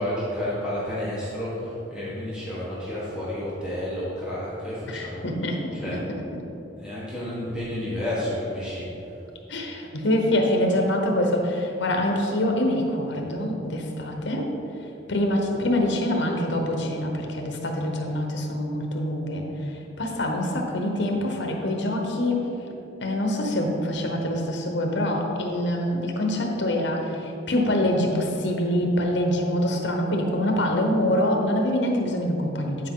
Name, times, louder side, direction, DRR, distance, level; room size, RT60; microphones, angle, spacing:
voice 1, 0.0-5.3 5.7-6.0 6.8-8.8, left 1 dB, 5° right, -10 dB, 1.6 m, -30 dB
voice 2, 4.9-6.2 9.5-14.5 15.1-19.4 20.0-22.5 23.0-32.9, left 1 dB, 65° left, 2 dB, 1.0 m, -25 dB
9.8 x 4.9 x 3.8 m, 3.0 s
head